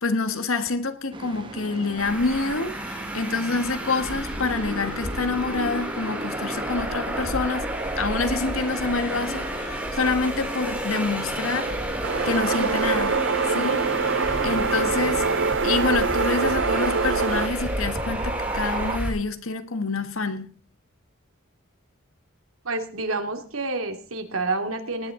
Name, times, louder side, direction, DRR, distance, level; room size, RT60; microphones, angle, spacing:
voice 1, 0.0-7.7 8.0-11.7 12.2-15.3 15.6-20.5, left 3 dB, 75° left, 1.5 m, -27 dB
sound 1, 1.1-19.0, right 1 dB, 25° right, 1.6 m, -34 dB
Traffic noise roadway noise, 2.0-19.1, right 1 dB, 10° right, 3.4 m, -33 dB
sound 2, 12.0-17.5, right 5 dB, 60° right, 0.7 m, -24 dB
voice 2, 22.6-25.1, right 3 dB, 80° right, 2.6 m, -28 dB
18.5 x 9.9 x 3.8 m
head